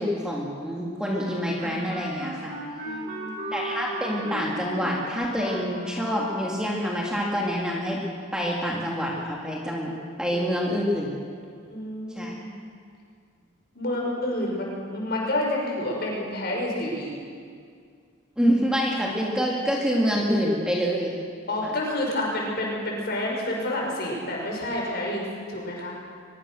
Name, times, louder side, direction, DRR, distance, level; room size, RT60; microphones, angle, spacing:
voice 1, 0.0-2.5 3.5-8.0 8.3-11.1 12.1-12.3 18.4-21.1, equal, 5° right, -3 dB, 2.7 m, -26 dB
Wind instrument woodwind instrument, 1.0-6.7, right 1 dB, 40° right, 6.7 m, -36 dB
voice 2, 2.8-3.5 11.7-12.6 13.7-17.1 21.5-26.0, left 1 dB, 50° left, -2 dB, 6.6 m, -29 dB
23.0 x 22.5 x 6.5 m, 2.1 s
head